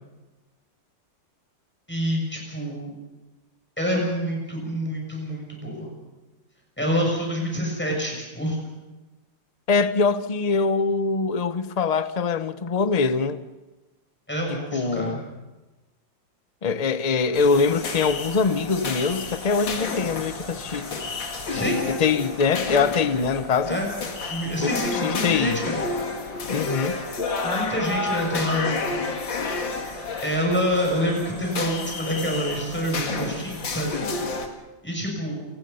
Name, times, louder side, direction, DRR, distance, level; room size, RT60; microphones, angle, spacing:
voice 1, 1.9-2.9 3.8-5.9 6.8-8.6 14.3-15.2 21.5-21.8 23.7-23.9 24.3-25.8 27.4-29.0 30.2-34.1 34.8-35.5, equal, 5° left, 7.0 m, -27 dB
voice 2, 9.7-13.4 14.5-15.2 16.6-20.9 21.5-23.8 24.6-25.6 26.5-27.0, left 5 dB, 35° left, 0.6 m, -23 dB
Crowd, 17.1-33.2, right 1 dB, 70° right, 6.0 m, -44 dB
sound 1, 17.3-34.5, left 4 dB, 85° left, 2.7 m, -31 dB
28.0 x 19.0 x 5.6 m
omnidirectional pair, 2.0 m